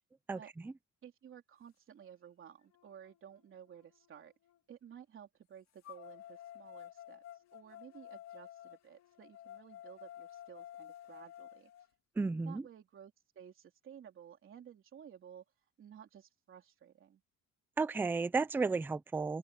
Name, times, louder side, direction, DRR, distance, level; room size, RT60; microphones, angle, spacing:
voice 1, 1.0-4.3 4.7-11.7 12.3-15.4 15.8-17.2, right 9 dB, 35° right, 3.5 m, -55 dB
sound 1, 2.0-2.1 2.7-4.6 5.8-11.9, left 12 dB, 50° left, 2.3 m, -53 dB
voice 2, 12.2-12.6 17.8-19.4, right 4 dB, 5° right, 0.4 m, -33 dB
cardioid pair, 175°, 34 cm